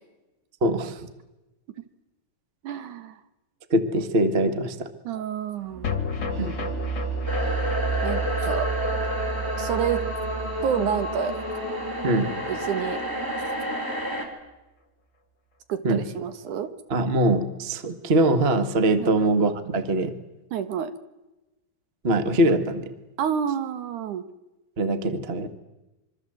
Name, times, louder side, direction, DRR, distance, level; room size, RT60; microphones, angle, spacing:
voice 1, 0.6-1.1 3.7-4.9 6.4-6.5 12.0-12.3 15.8-16.0 16.9-20.1 22.0-22.9 24.8-25.5, right 1 dB, 35° right, 10 dB, 1.0 m, -22 dB
voice 2, 2.6-3.2 5.1-5.9 8.0-8.7 9.6-10.0 10.6-11.3 12.5-13.0 15.7-16.7 19.0-19.1 20.5-20.9 23.2-24.3, right 8 dB, 65° right, 11 dB, 2.6 m, -28 dB
sound 1, 5.7-13.4, right 6 dB, 85° right, 4.3 m, -32 dB
sound 2, 5.8-12.3 12.5-12.6 12.9-13.0, left 5 dB, 35° left, 2.6 m, -35 dB
sound 3, 7.3-14.3, equal, 5° right, 4.2 m, -30 dB
26.0 x 24.5 x 8.0 m, 1.0 s
omnidirectional pair, 4.0 m